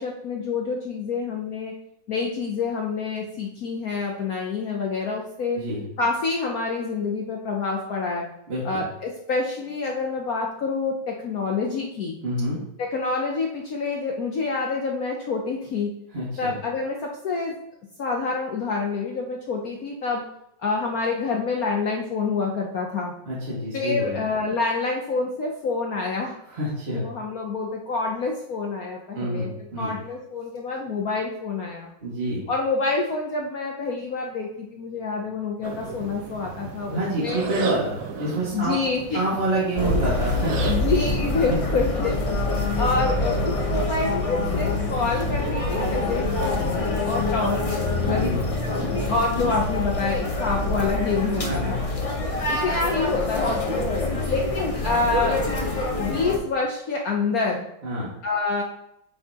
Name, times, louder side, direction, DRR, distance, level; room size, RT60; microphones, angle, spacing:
voice 1, 0.0-1.8 2.1-5.6 6.0-8.3 8.6-12.2 12.8-15.9 16.4-17.6 18.0-20.2 20.6-23.1 23.7-26.3 26.9-29.5 29.8-31.9 32.5-37.4 38.5-39.2 40.7-47.8 48.1-48.3 48.6-51.8 52.5-53.9 54.3-55.4 56.0-57.7 58.2-58.6, left 4 dB, 60° left, 0 dB, 1.0 m, -27 dB
voice 2, 5.5-5.9 8.5-8.8 12.2-12.6 16.1-16.6 23.3-24.2 26.4-27.0 29.1-30.0 32.0-32.5 36.9-38.8 39.1-40.7 48.0-48.4 48.8-49.0 51.4-52.0 54.0-54.3 57.8-58.1, right 1 dB, 30° right, -9 dB, 2.1 m, -28 dB
sound 1, 35.6-41.2, right 5 dB, 55° right, 1.1 m, -35 dB
sound 2, 39.8-56.4, left 2 dB, 35° left, 0.5 m, -25 dB
8.1 x 5.6 x 2.9 m, 0.78 s
omnidirectional pair, 2.1 m